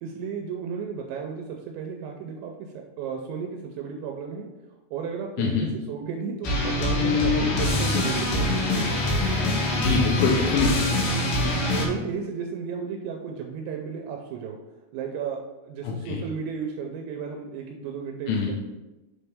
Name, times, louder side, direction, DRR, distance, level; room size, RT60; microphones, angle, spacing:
voice 1, 0.0-4.5 4.9-5.6 5.9-8.6 11.2-14.6 14.9-18.5, right 6 dB, 85° right, 2 dB, 2.8 m, -34 dB
sound 1, 6.4-11.9, left 2 dB, 70° left, 2.4 m, -24 dB
voice 2, 9.8-10.9 15.8-16.2 18.3-18.5, left 5 dB, 90° left, -1 dB, 3.2 m, -24 dB
7.4 x 4.2 x 3.5 m, 1.1 s
omnidirectional pair, 5.2 m